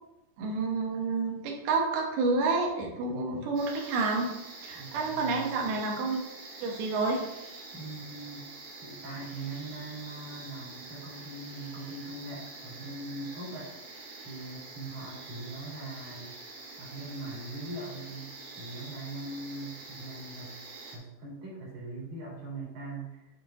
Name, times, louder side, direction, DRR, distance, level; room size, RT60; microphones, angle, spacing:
voice 1, 0.4-4.3 4.6-6.2 6.6-7.2, right 3 dB, 70° right, 0 dB, 2.9 m, -29 dB
voice 2, 3.1-3.5 4.8-5.5 7.7-8.4 8.8-13.7 14.2-16.3 16.8-20.6 20.9-23.3, right 2 dB, 50° right, -6 dB, 3.3 m, -41 dB
sound 1, 3.6-21.0, right 3 dB, 90° right, 3.9 m, -46 dB
9.2 x 3.9 x 3.7 m, 0.93 s
omnidirectional pair, 5.0 m